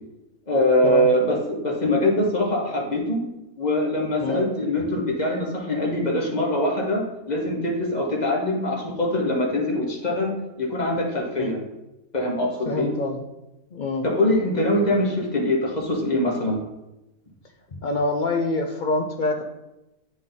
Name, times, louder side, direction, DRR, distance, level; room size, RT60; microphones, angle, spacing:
voice 1, 0.5-3.2 3.6-11.6 12.1-12.9 14.0-16.6, left 1 dB, 35° left, 0 dB, 1.2 m, -23 dB
voice 2, 12.7-13.2 13.7-14.0 17.8-19.4, left 2 dB, 60° left, 3 dB, 0.5 m, -25 dB
7.7 x 3.7 x 3.9 m, 0.95 s
omnidirectional pair, 1.4 m